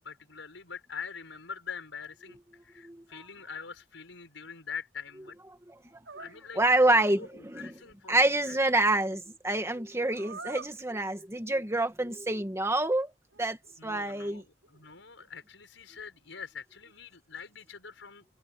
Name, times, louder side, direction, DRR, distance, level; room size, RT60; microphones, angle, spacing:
voice 1, 0.0-5.4 6.2-7.3 7.5-8.6 13.8-18.3, left 6 dB, 90° left, 5.8 m, -44 dB
sound 1, 6.0-6.3 10.1-10.8 12.1-12.2 13.3-14.2 14.6-15.4, right 4 dB, 85° right, 5.5 m, -46 dB
voice 2, 6.6-7.7 8.1-13.1 13.4-13.6 13.8-14.4, right 2 dB, 15° right, 2.0 m, -27 dB
head